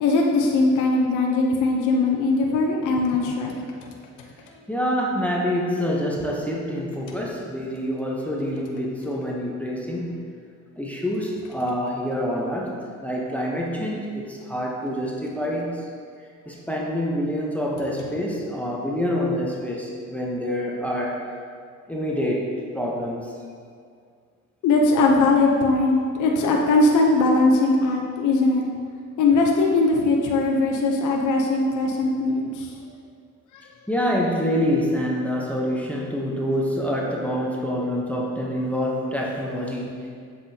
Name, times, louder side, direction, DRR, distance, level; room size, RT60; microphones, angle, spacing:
voice 1, 0.0-3.6 24.6-28.7 29.2-32.7, left 3 dB, 80° left, 0 dB, 0.8 m, -20 dB
voice 2, 4.7-10.2 10.8-15.9 16.5-21.2 21.9-22.5 22.7-23.2 33.9-39.9, equal, 5° left, -3 dB, 0.8 m, -26 dB
7.5 x 5.9 x 2.8 m, 2.2 s
cardioid pair, 90°, 30 cm